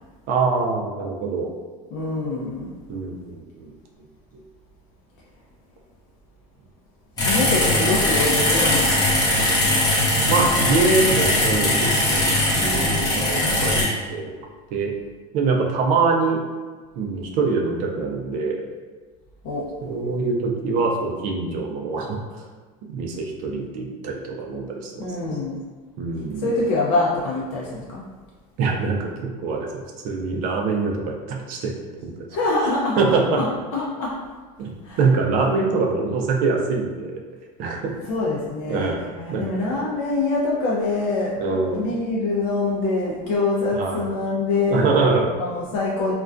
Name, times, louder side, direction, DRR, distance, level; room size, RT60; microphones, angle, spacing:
voice 1, 0.3-1.5 2.9-3.7 10.3-14.3 14.7-14.9 15.3-16.4 17.0-18.6 19.8-22.4 22.9-25.4 26.0-26.5 28.6-29.7 30.0-31.7 32.0-32.2 33.0-33.4 34.6-37.1 37.6-37.9 38.7-39.4 41.4-41.9 43.7-44.0 44.7-45.4, right 4 dB, 45° right, 1 dB, 0.4 m, -24 dB
voice 2, 1.9-2.7 7.3-9.0 12.6-13.2 19.4-19.7 25.0-25.6 26.4-28.0 32.3-33.0 33.4-34.2 34.8-35.0 38.1-38.9 39.2-44.8 45.4-46.1, left 3 dB, 70° left, -5 dB, 0.5 m, -24 dB
sound 1, 7.2-13.8, left 1 dB, 20° left, 0.6 m, -20 dB
2.3 x 2.1 x 2.4 m, 1.4 s
cardioid pair, 160°, 19 cm